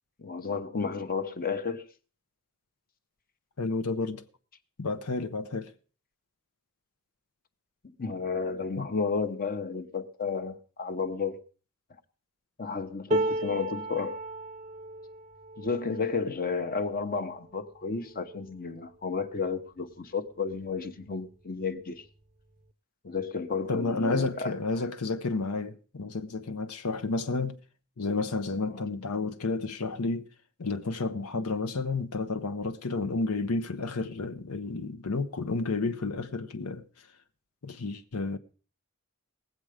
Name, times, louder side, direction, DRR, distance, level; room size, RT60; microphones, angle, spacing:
voice 1, 0.2-1.9 8.0-11.4 12.6-14.2 15.6-22.0 23.0-24.5 28.7-28.8, left 4 dB, 40° left, 0.9 m, -32 dB
voice 2, 3.6-4.2 4.8-5.7 8.8-8.9 23.7-27.6 28.0-30.3 30.6-36.8 37.6-38.4, left 3 dB, 80° left, 0.8 m, -31 dB
sound 1, 13.1-19.3 19.8-20.0 20.3-21.1 22.1-22.2, right 2 dB, 35° right, 0.6 m, -36 dB
19.5 x 7.7 x 4.9 m
head